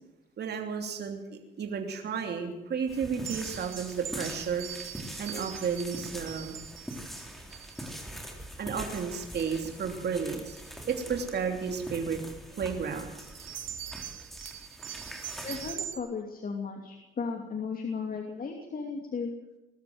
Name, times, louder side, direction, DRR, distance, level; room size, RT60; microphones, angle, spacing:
voice 1, 0.4-4.7 5.2-6.6 8.6-10.6 10.9-12.2 12.5-13.1, right 6 dB, 55° right, 3 dB, 3.0 m, -32 dB
sound 1, 2.9-15.8, equal, ahead, 4.0 m, -43 dB
sound 2, 3.3-8.0 8.9-9.1 9.4-9.8 10.5-10.7 13.2-16.0, right 10 dB, 75° right, 1.5 m, -42 dB
voice 2, 15.4-19.3, left 5 dB, 45° left, 2 dB, 2.8 m, -35 dB
21.0 x 13.5 x 9.3 m, 1.0 s
cardioid pair, 90°, 20 cm